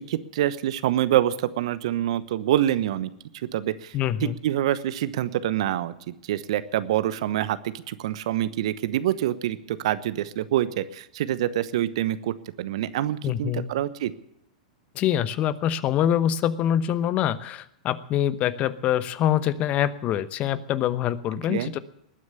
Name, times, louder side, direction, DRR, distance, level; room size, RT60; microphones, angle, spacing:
voice 1, 0.0-4.0 4.4-14.1 21.5-21.7, right 12 dB, 60° right, 15 dB, 1.0 m, -26 dB
voice 2, 3.9-4.4 13.2-13.7 14.9-21.8, left 10 dB, 35° left, 16 dB, 1.0 m, -25 dB
20.0 x 9.6 x 6.9 m, 0.78 s
hypercardioid pair, 100°, 4 cm